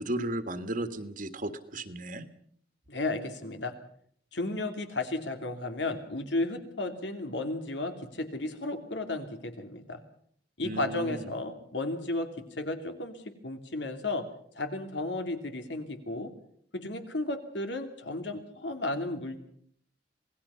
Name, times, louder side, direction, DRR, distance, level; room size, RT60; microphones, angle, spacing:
voice 1, 0.0-2.3 10.6-11.3, right 1 dB, 50° right, 9 dB, 1.7 m, -35 dB
voice 2, 2.9-3.7 4.3-10.0 10.6-12.3 12.6-13.2 13.4-14.3 14.5-16.3 16.7-19.4, left 2 dB, 90° left, 6 dB, 2.9 m, -33 dB
27.0 x 19.0 x 5.7 m, 0.63 s
head